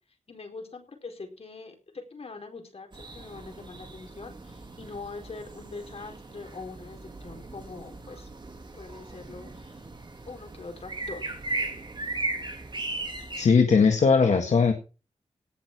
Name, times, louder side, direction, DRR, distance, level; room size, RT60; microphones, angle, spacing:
voice 1, 0.3-8.3 8.7-9.9 10.3-11.4, left 3 dB, 55° left, 4 dB, 4.5 m, -43 dB
sound 1, 2.9-13.5, right 2 dB, 40° right, 3.1 m, -37 dB
voice 2, 13.4-14.7, left 5 dB, 75° left, 5 dB, 1.8 m, -19 dB
18.0 x 6.4 x 6.0 m, 0.34 s
wide cardioid pair, 80°, 12 cm